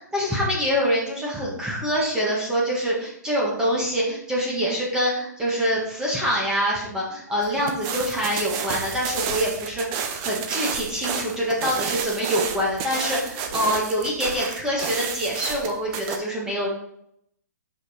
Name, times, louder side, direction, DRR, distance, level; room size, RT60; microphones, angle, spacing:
voice 1, 0.1-16.7, equal, 5° right, -4 dB, 1.5 m, -25 dB
sound 1, 7.4-16.2, right 7 dB, 25° right, 0.6 m, -30 dB
7.2 x 5.2 x 4.3 m, 0.74 s
hypercardioid pair, 155°, 10 cm